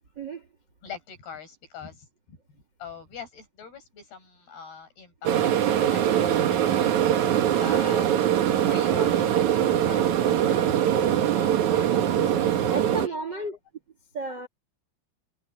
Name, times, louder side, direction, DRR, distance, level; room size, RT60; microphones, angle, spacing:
voice 1, 0.1-0.5 7.6-7.9 12.7-13.6 14.1-14.5, right 2 dB, 45° right, 1.4 m, -33 dB
voice 2, 0.8-2.4 2.8-8.1 8.6-13.4, left 5 dB, 50° left, 8.4 m, -43 dB
sound 1, 5.2-13.1, right 10 dB, 90° right, 1.6 m, -22 dB
omnidirectional pair, 5.9 m